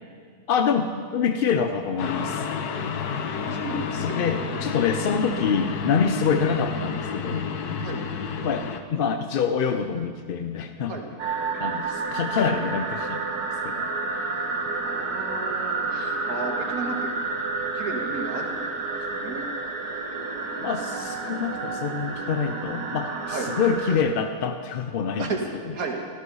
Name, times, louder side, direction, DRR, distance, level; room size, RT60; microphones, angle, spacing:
voice 1, 0.5-2.5 3.9-7.5 8.4-11.0 11.5-13.2 13.6-13.9 14.2-14.3 20.6-25.3, left 6 dB, 60° left, 7 dB, 0.5 m, -26 dB
sound 1, 2.0-8.8, left 6 dB, 85° left, 1.4 m, -30 dB
voice 2, 3.3-4.4 5.0-5.2 7.8-8.0 10.9-11.1 14.8-17.4 17.7-19.5 23.3-23.5 25.2-25.5 25.7-26.0, right 4 dB, 65° right, 2 dB, 2.1 m, -34 dB
sound 2, 11.2-24.0, right 3 dB, 85° right, 1.8 m, -30 dB
14.5 x 14.0 x 5.5 m, 2.1 s
omnidirectional pair, 1.6 m